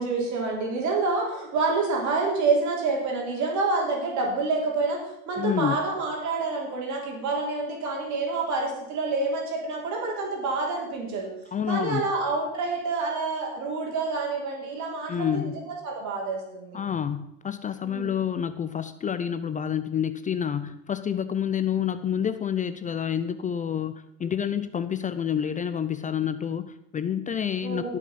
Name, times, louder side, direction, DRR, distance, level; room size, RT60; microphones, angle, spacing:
voice 1, 0.0-11.3 11.7-16.8 17.8-18.1 27.6-28.0, right 3 dB, 55° right, -1 dB, 3.6 m, -28 dB
voice 2, 5.4-5.8 11.5-12.0 15.1-15.5 16.7-28.0, left 8 dB, 25° left, 12 dB, 0.5 m, -28 dB
16.5 x 6.4 x 5.8 m, 0.84 s
supercardioid pair, 120°, 34 cm